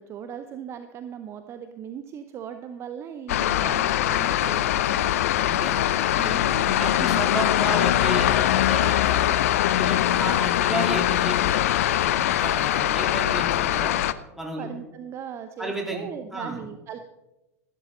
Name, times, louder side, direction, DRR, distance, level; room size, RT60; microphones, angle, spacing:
voice 1, 0.0-5.2 6.4-6.9 14.6-17.0, right 8 dB, 30° right, 9 dB, 0.8 m, -38 dB
sound 1, 3.3-14.1, left 12 dB, 60° left, 0.6 m, -22 dB
voice 2, 5.4-6.5 6.8-9.3 9.7-11.6 12.0-13.9 14.4-14.7 15.6-16.6, right 1 dB, 5° right, -1 dB, 3.3 m, -32 dB
15.0 x 11.5 x 3.9 m, 0.98 s
figure-of-eight pair, 90°, 9 cm